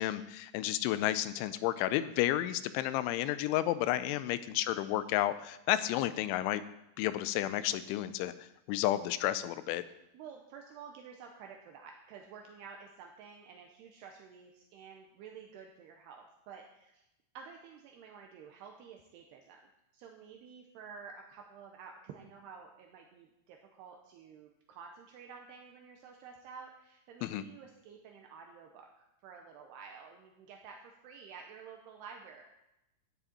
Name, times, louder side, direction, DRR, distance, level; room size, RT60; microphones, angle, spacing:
voice 1, 0.0-6.6 7.0-8.3 8.7-9.8 27.2-27.4, left 14 dB, 90° left, 13 dB, 3.0 m, -31 dB
voice 2, 10.1-17.0 17.3-19.6 19.9-28.9 29.2-32.4, right 6 dB, 80° right, 2 dB, 2.6 m, -51 dB
13.5 x 9.7 x 4.3 m, 0.90 s
omnidirectional pair, 5.3 m